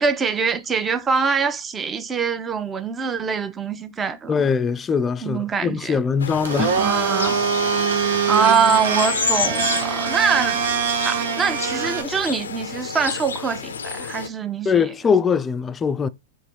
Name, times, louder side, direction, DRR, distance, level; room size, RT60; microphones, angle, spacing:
voice 1, 0.0-4.3 5.2-6.0 6.8-7.4 8.0-10.6 11.0-14.7, right 6 dB, 20° right, 0.6 m, -23 dB
voice 2, 4.3-6.8 8.1-8.2 14.7-16.1, left 6 dB, 20° left, 0.3 m, -22 dB
sound 1, 6.2-14.3, left 6 dB, 85° left, 0.5 m, -30 dB
Domestic sounds home sounds, 6.4-12.0, right 6 dB, 75° right, 0.8 m, -23 dB
4.0 x 2.6 x 4.4 m
hypercardioid pair, 105°, 0 cm